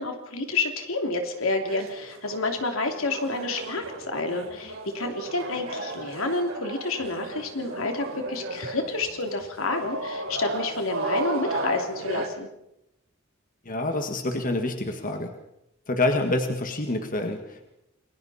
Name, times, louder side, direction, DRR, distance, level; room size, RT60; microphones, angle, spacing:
voice 1, 0.0-12.5, left 3 dB, 75° left, 4 dB, 3.0 m, -29 dB
sound 1, 1.4-12.3, right 2 dB, 70° right, 3.9 m, -34 dB
voice 2, 13.7-15.3 15.9-17.7, left 2 dB, 40° left, 5 dB, 1.7 m, -27 dB
29.0 x 21.0 x 4.3 m, 0.85 s
head